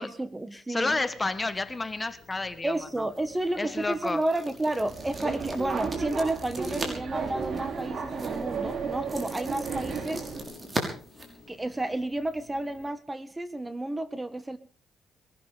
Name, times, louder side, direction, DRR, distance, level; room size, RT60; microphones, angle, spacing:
voice 1, 0.0-1.0 2.6-10.3 11.5-14.6, right 1 dB, 15° right, 13 dB, 1.6 m, -31 dB
voice 2, 0.5-3.1 3.6-4.2, left 3 dB, 20° left, 12 dB, 1.4 m, -31 dB
sound 1, 0.9-12.9, left 6 dB, 60° left, 5.2 m, -53 dB
sound 2, 3.0-12.0, right 2 dB, 30° right, 6.1 m, -40 dB
Subway metro underground, 4.8-10.4, right 5 dB, 55° right, 3.6 m, -33 dB
21.5 x 13.0 x 5.1 m, 0.43 s
cardioid pair, 90°, 0 cm